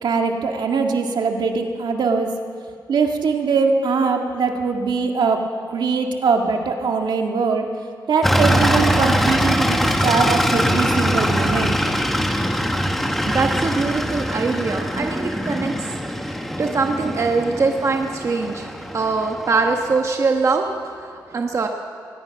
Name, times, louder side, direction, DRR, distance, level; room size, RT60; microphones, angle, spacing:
voice 1, 0.0-2.3 2.9-5.4 5.7-7.7 8.1-11.8, right 5 dB, 75° right, 3 dB, 2.1 m, -21 dB
sound 1, 8.2-20.0, equal, ahead, 1.2 m, -22 dB
voice 2, 13.2-15.9 16.6-18.7 18.9-20.7 21.1-21.7, right 4 dB, 40° right, 3 dB, 1.3 m, -22 dB
23.5 x 19.5 x 6.0 m, 2.3 s
wide cardioid pair, 160°, 8 cm